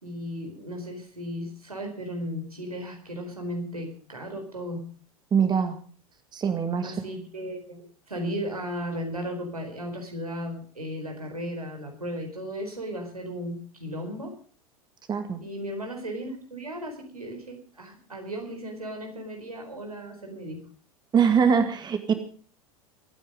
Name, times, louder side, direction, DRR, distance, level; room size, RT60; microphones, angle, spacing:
voice 1, 0.0-4.8 6.8-7.8 8.1-14.3 15.4-20.6, equal, 85° right, 3 dB, 4.5 m, -35 dB
voice 2, 5.3-5.8 6.3-6.9 15.1-15.4 21.1-22.1, right 6 dB, 25° right, 8 dB, 2.1 m, -23 dB
23.5 x 9.5 x 5.3 m, 0.43 s
figure-of-eight pair, 85°, 18 cm